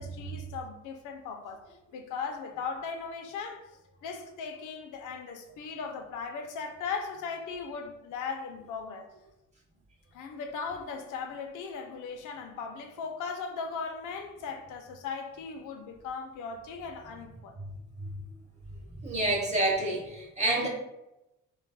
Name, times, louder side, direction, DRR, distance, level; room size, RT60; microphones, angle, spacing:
voice 1, 0.0-1.6 1.9-3.6 4.0-9.1 10.1-17.6, left 5 dB, 85° left, 0.5 m, -38 dB
voice 2, 19.0-20.7, right 1 dB, 25° right, 0.8 m, -28 dB
3.2 x 2.4 x 2.3 m
cardioid pair, 90°, 30 cm